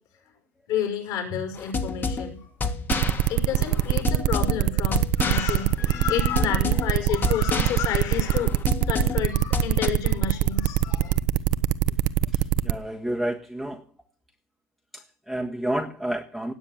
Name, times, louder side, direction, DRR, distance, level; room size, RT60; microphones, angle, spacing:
voice 1, 0.7-2.5 3.3-11.2, left 8 dB, 45° left, 6 dB, 6.0 m, -30 dB
sound 1, 1.6-9.9, left 4 dB, 20° left, 1.8 m, -30 dB
sound 2, 2.9-12.7, right 14 dB, 50° right, 1.0 m, -22 dB
voice 2, 12.3-13.8 14.9-16.5, right 1 dB, ahead, 3 dB, 1.5 m, -30 dB
17.5 x 7.3 x 9.0 m, 0.42 s
supercardioid pair, 115°, 9 cm